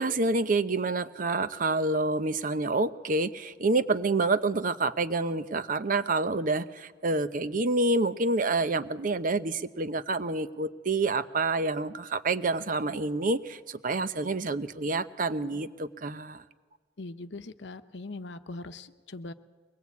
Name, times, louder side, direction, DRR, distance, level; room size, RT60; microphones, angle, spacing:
voice 1, 0.0-16.4, right 3 dB, 50° right, 12 dB, 0.8 m, -28 dB
voice 2, 17.0-19.3, left 2 dB, 90° left, 9 dB, 0.9 m, -41 dB
23.0 x 20.0 x 8.3 m, 1.4 s
head